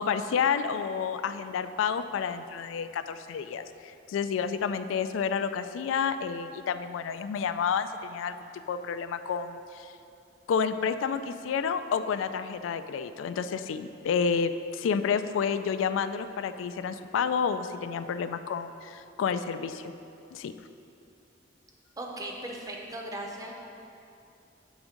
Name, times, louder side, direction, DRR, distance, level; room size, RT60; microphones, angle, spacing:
voice 1, 0.0-8.4 8.7-9.9 10.5-19.9 20.3-20.5, left 6 dB, 90° left, 11 dB, 0.3 m, -30 dB
voice 2, 22.0-23.5, right 1 dB, 20° right, 0 dB, 0.7 m, -38 dB
8.2 x 3.6 x 5.0 m, 2.7 s
head